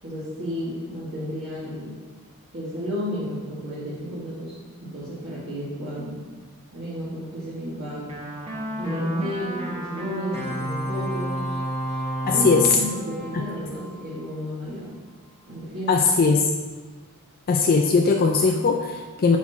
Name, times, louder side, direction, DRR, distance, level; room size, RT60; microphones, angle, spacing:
voice 1, 0.0-2.0 2.5-4.5 4.8-6.2 6.7-8.1 8.8-11.4 12.2-14.9 15.5-15.9, equal, 55° right, -11 dB, 1.9 m, -32 dB
sound 1, 8.1-14.2, right 1 dB, 30° right, 1.2 m, -31 dB
voice 2, 12.3-12.7 13.3-13.4 15.9-16.5 17.5-19.4, left 4 dB, 45° left, 3 dB, 0.4 m, -19 dB
6.1 x 4.2 x 5.8 m, 1.3 s
head